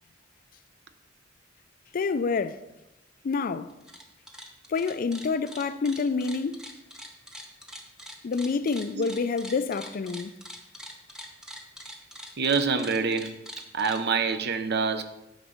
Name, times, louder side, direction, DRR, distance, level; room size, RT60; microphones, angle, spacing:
voice 1, 1.9-2.6 3.2-3.7 4.7-6.6 8.2-10.3, left 4 dB, 45° left, 0.4 m, -27 dB
sound 1, 3.7-4.0 4.3-14.0, equal, 5° right, 0.9 m, -43 dB
voice 2, 12.4-13.3 13.7-15.0, right 5 dB, 55° right, 0.7 m, -26 dB
9.5 x 4.0 x 6.4 m
head